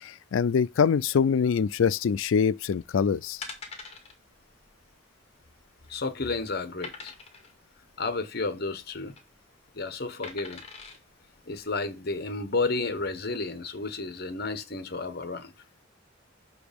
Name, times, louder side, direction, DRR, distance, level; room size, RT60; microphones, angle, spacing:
voice 1, 0.0-3.4, left 6 dB, 80° left, 0.4 m, -24 dB
sound 1, 3.4-4.1 4.5-4.7 4.9-5.0 5.6-6.1 6.8-7.5 8.8-9.2 10.2-11.0 11.6-11.7, left 4 dB, 30° left, 2.0 m, -42 dB
voice 2, 5.9-7.1 8.0-9.1 9.7-10.6 11.5-15.5, left 3 dB, 55° left, 1.1 m, -31 dB
6.2 x 5.0 x 5.1 m
head